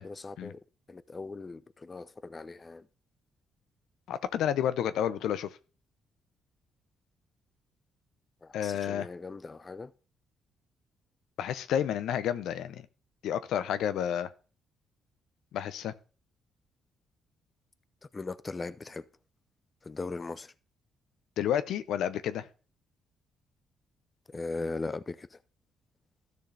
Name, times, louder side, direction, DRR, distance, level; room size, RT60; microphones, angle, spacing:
voice 1, 0.0-2.9 8.4-9.9 18.0-19.1 19.8-20.5 24.3-25.4, left 3 dB, 25° left, 0.5 m, -39 dB
voice 2, 4.1-5.5 8.5-9.1 11.4-12.9 13.2-14.3 15.5-15.9 21.4-22.5, left 9 dB, 80° left, 0.7 m, -30 dB
13.0 x 6.4 x 3.4 m
cardioid pair, 90°, 0 cm